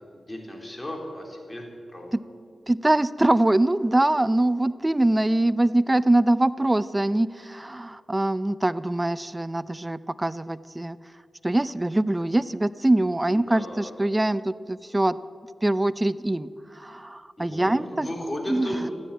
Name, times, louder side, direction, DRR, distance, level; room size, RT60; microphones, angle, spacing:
voice 1, 0.1-1.7 1.9-2.2 13.3-13.9 17.4-18.9, left 1 dB, 25° left, 1 dB, 3.9 m, -35 dB
voice 2, 2.7-11.0 11.4-15.2 15.6-18.1 18.5-18.9, right 1 dB, 20° right, 17 dB, 0.5 m, -23 dB
14.5 x 10.0 x 8.6 m, 2.2 s
cardioid pair, 45°, 0 cm